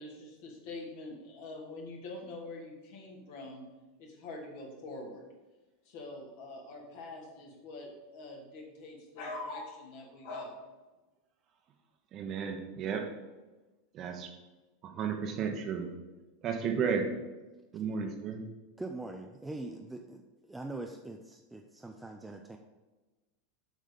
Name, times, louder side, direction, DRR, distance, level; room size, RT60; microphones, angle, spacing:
voice 1, 0.0-3.6 4.0-5.2 5.9-10.6, left 2 dB, 50° left, -1 dB, 2.4 m, -44 dB
voice 2, 12.1-13.1 13.9-14.3 14.8-15.9 16.4-17.1 17.7-18.4, right 6 dB, 35° right, 4 dB, 1.2 m, -33 dB
voice 3, 18.8-22.6, right 2 dB, 5° right, 3 dB, 0.6 m, -42 dB
7.8 x 6.3 x 5.3 m, 1.2 s
figure-of-eight pair, 85°, 0 cm